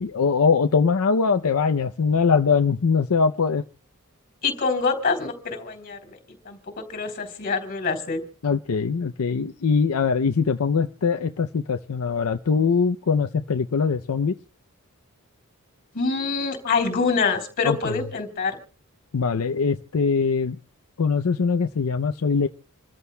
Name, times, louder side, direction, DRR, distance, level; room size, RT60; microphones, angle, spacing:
voice 1, 0.0-3.6 8.4-14.3 17.6-18.0 19.1-20.6 21.0-22.5, left 5 dB, 75° left, 6 dB, 0.5 m, -22 dB
voice 2, 4.4-6.2 6.4-8.2 15.9-18.6, left 4 dB, 40° left, 6 dB, 3.3 m, -25 dB
28.0 x 14.0 x 2.2 m, 0.39 s
head